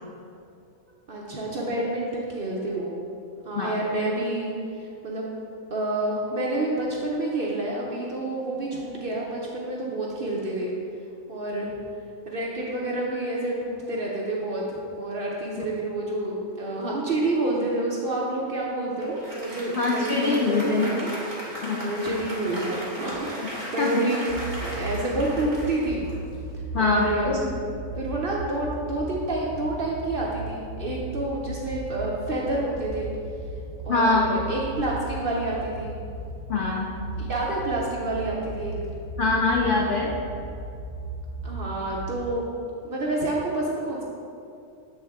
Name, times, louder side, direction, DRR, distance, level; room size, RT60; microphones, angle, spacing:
voice 1, 1.1-3.0 3.4-4.5 4.8-5.3 5.7-10.7 11.3-11.7 12.3-21.1 21.8-24.3 24.6-26.1 26.7-27.4 28.0-33.1 33.8-35.9 37.2-38.7 41.4-42.4 42.8-44.0, right 2 dB, 55° right, -3 dB, 0.7 m, -28 dB
Applause, 19.0-26.6, equal, 25° right, 1.3 m, -36 dB
voice 2, 19.7-20.9 21.6-21.9 23.6-24.0 26.7-27.4 33.9-34.3 36.5-36.9 39.2-40.1, left 3 dB, 70° left, -2 dB, 0.5 m, -23 dB
sound 1, 24.3-42.3, right 2 dB, 85° right, 1.2 m, -36 dB
7.9 x 3.6 x 3.5 m, 2.5 s
omnidirectional pair, 1.5 m